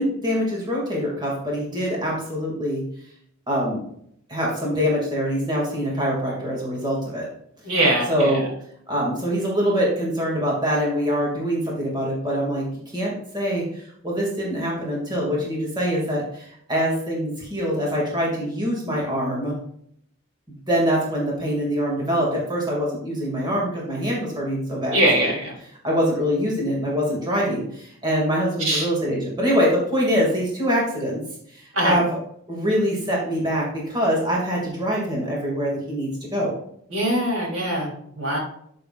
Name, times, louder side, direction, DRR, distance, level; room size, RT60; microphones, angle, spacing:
voice 1, 0.0-2.8 3.5-3.8 4.3-7.3 8.1-8.5 8.9-12.7 12.9-19.5 20.7-25.3 25.8-31.2 31.5-32.2 32.5-36.5, equal, 20° right, -4 dB, 2.4 m, -24 dB
voice 2, 7.6-8.5 24.9-25.6 28.6-28.9 31.7-32.0 36.9-38.4, right 1 dB, 70° right, -2 dB, 3.6 m, -22 dB
12.0 x 6.8 x 2.5 m, 0.68 s
head